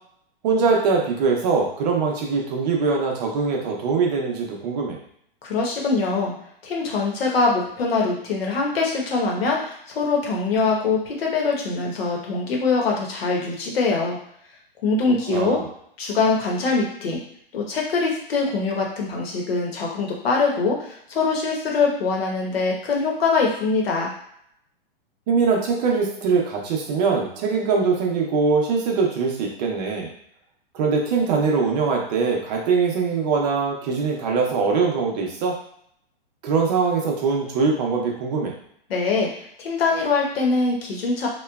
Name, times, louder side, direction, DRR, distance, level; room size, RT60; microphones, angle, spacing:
voice 1, 0.4-5.0 15.3-15.6 25.3-30.1 30.7-35.6 36.4-38.5, right 4 dB, 45° right, 0 dB, 0.7 m, -22 dB
voice 2, 5.4-6.3 6.6-14.2 14.8-15.6 16.0-17.2 17.5-24.1 38.9-39.3 39.6-41.3, left 4 dB, 85° left, -1 dB, 0.9 m, -23 dB
3.0 x 2.2 x 2.3 m, 0.69 s
hypercardioid pair, 145°, 29 cm